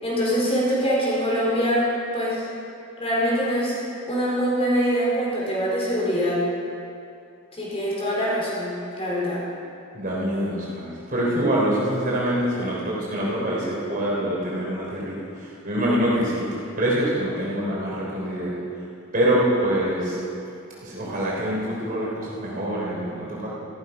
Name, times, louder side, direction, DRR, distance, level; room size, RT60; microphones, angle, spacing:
voice 1, 0.0-2.4 3.0-3.8 4.1-6.4 7.5-9.4, equal, 30° left, -5 dB, 4.4 m, -24 dB
voice 2, 9.9-16.5 16.8-18.6 19.1-20.2 20.8-23.6, right 1 dB, 40° right, -5 dB, 3.6 m, -25 dB
14.5 x 14.0 x 5.4 m, 2.6 s
head